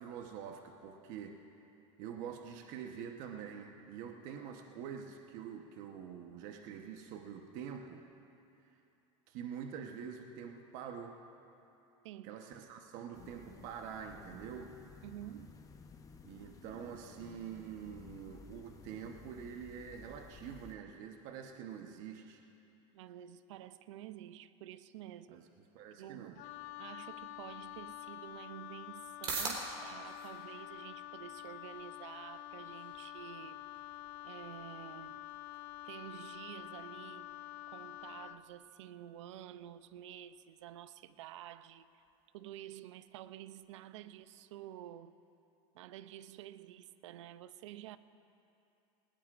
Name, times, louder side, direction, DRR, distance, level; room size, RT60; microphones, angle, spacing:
voice 1, 0.0-1.4 2.0-8.0 9.3-11.2 12.2-14.7 16.2-22.4 25.3-25.4 25.7-26.4, right 7 dB, 60° right, 1.1 m, -46 dB
voice 2, 12.0-12.4 15.0-15.5 22.9-25.4 26.0-26.4 26.8-33.6 34.2-35.2 35.8-37.3 37.7-42.0 42.3-45.2 45.7-48.0, right 12 dB, 85° right, 0.6 m, -50 dB
sound 1, 13.1-20.7, left 5 dB, 20° left, 0.9 m, -55 dB
Wind instrument woodwind instrument, 26.4-38.4, left 14 dB, 55° left, 0.5 m, -48 dB
sound 2, 28.3-44.7, right 3 dB, 40° right, 4.0 m, -50 dB
19.5 x 19.5 x 2.5 m
supercardioid pair, 115°, 15 cm